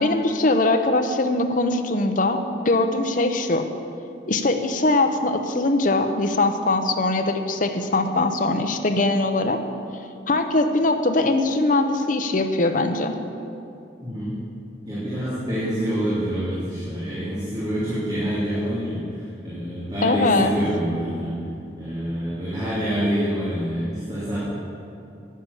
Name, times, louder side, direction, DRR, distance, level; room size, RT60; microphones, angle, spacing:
voice 1, 0.0-2.4 2.6-3.6 4.3-9.6 10.3-13.1 20.0-20.5, left 2 dB, 45° left, 6 dB, 0.8 m, -21 dB
voice 2, 14.0-14.4 14.8-21.3 21.8-24.4, equal, 25° right, -10 dB, 2.8 m, -26 dB
10.0 x 9.8 x 6.5 m, 2.7 s
head